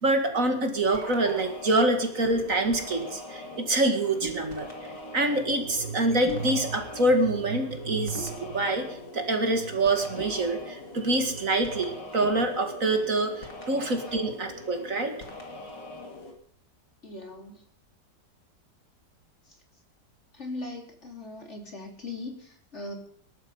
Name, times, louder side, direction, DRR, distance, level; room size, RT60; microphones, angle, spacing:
voice 1, 0.0-4.7 5.1-15.1, right 2 dB, 50° right, 5 dB, 2.3 m, -26 dB
sound 1, 0.7-16.3, left 1 dB, 85° left, 3.4 m, -42 dB
sound 2, 2.2-3.9 4.2-13.7, right 1 dB, 65° right, 5.8 m, -45 dB
voice 2, 17.0-17.6 19.5-19.6 20.3-22.9, left 2 dB, 40° left, 3 dB, 3.3 m, -39 dB
20.5 x 12.0 x 5.5 m, 0.63 s
omnidirectional pair, 1.8 m